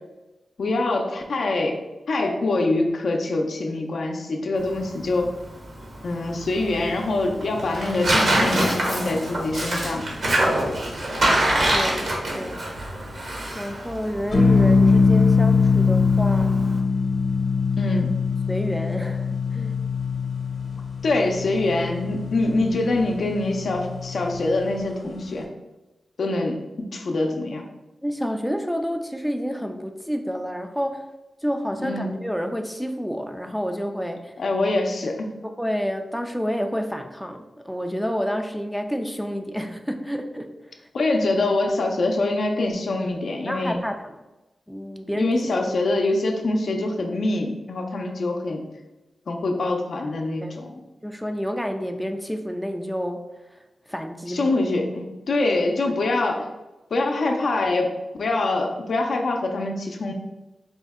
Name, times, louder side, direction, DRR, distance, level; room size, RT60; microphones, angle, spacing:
voice 1, 0.6-1.8 2.1-5.3 6.0-10.0 17.7-18.1 21.0-25.5 26.2-27.7 31.8-32.1 34.4-35.3 40.9-43.8 45.1-48.6 49.3-50.7 54.3-56.5 56.9-57.9 58.2-60.1, left 2 dB, 70° left, 2 dB, 0.5 m, -24 dB
Tearing, 4.6-16.8, right 1 dB, 65° right, 1.0 m, -26 dB
voice 2, 11.7-12.7 13.6-16.6 18.5-19.7 28.0-31.1 31.4-34.3 35.4-40.5 40.8-40.9 43.5-44.1 44.7-45.3 50.4-50.6 51.0-53.3 53.5-53.6 53.9-54.6 55.9-56.0, equal, ahead, 5 dB, 0.3 m, -29 dB
sound 1, 14.3-24.8, left 4 dB, 55° left, 0.8 m, -22 dB
4.3 x 2.1 x 3.4 m, 1.0 s
cardioid pair, 75°, 0 cm